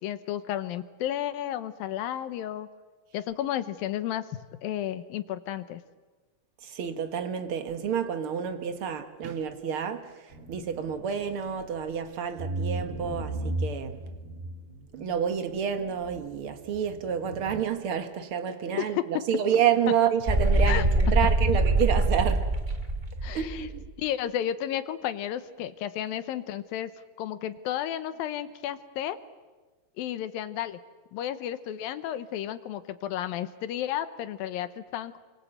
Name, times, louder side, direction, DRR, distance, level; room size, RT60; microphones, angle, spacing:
voice 1, 0.0-2.7 3.1-4.3 4.6-5.8 18.7-19.1 20.6-20.8 23.2-23.7 24.0-26.9 27.2-29.2 30.0-30.8 31.1-35.2, left 11 dB, 75° left, 2.6 m, -32 dB
voice 2, 6.6-14.0 14.9-22.5 23.3-23.9, right 8 dB, 60° right, 1.4 m, -29 dB
sound 1, 10.3-12.0 12.4-17.6, right 1 dB, 90° right, 4.9 m, -36 dB
sound 2, 20.3-23.8, right 2 dB, 30° right, 0.9 m, -24 dB
29.0 x 24.5 x 8.0 m
omnidirectional pair, 4.4 m